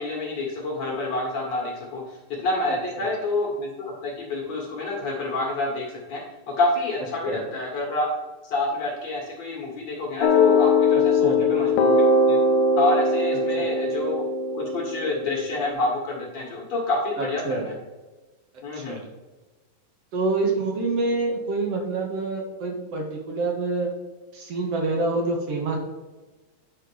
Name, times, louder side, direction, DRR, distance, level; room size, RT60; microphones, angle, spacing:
voice 1, 0.0-6.2 6.5-8.1 8.4-12.0 12.3-12.4 12.8-14.3 14.5-17.7 18.6-19.0, left 2 dB, 50° left, -2 dB, 2.7 m, -28 dB
sound 1, 10.2-15.7, left 2 dB, 75° left, 1.8 m, -21 dB
voice 2, 17.2-17.7 18.7-19.0 20.1-23.9 24.3-25.8, right 3 dB, 60° right, 1 dB, 1.9 m, -26 dB
10.0 x 4.4 x 6.2 m, 1.2 s
omnidirectional pair, 4.2 m